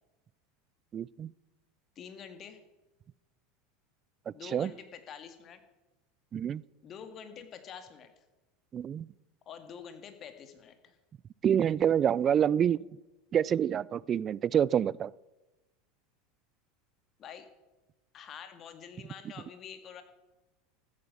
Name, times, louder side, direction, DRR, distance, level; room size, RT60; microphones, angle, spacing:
voice 1, 0.9-1.3 4.3-4.7 6.3-6.6 8.7-9.1 11.4-12.8 13.3-15.1, right 9 dB, 35° right, 24 dB, 0.4 m, -27 dB
voice 2, 2.0-2.6 4.3-5.6 6.8-8.1 9.5-11.0 17.2-17.5 18.1-20.0, left 7 dB, 40° left, 9 dB, 2.1 m, -47 dB
14.0 x 9.6 x 7.2 m, 1.1 s
hypercardioid pair, 95°, 0 cm